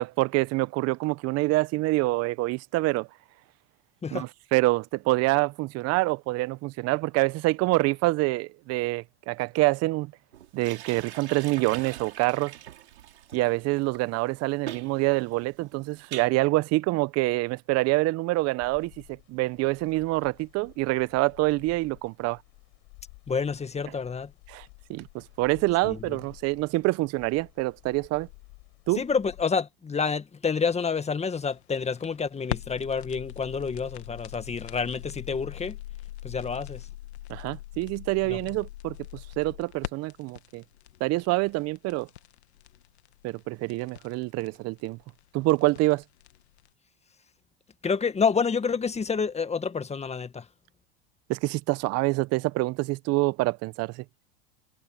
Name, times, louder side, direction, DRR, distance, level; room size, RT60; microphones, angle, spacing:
voice 1, 0.0-3.1 4.1-10.1 10.5-12.5 13.3-18.9 19.3-22.4 24.5-28.3 28.9-29.0 37.3-38.9 39.4-40.6 41.0-42.1 43.2-45.0 45.3-46.0 51.3-54.0, right 21 dB, 50° right, 1.1 m, -26 dB
sound 1, 10.3-16.3, right 12 dB, 80° right, 6.7 m, -42 dB
sound 2, 18.6-29.4, left 36 dB, 60° left, 7.9 m, -53 dB
voice 2, 23.3-24.3 25.8-26.2 29.0-35.8 36.2-36.8 38.3-38.4 47.8-50.5, left 5 dB, 20° left, 1.9 m, -28 dB
sound 3, 31.5-46.7, left 14 dB, 80° left, 1.7 m, -41 dB
hypercardioid pair, 90°, 32 cm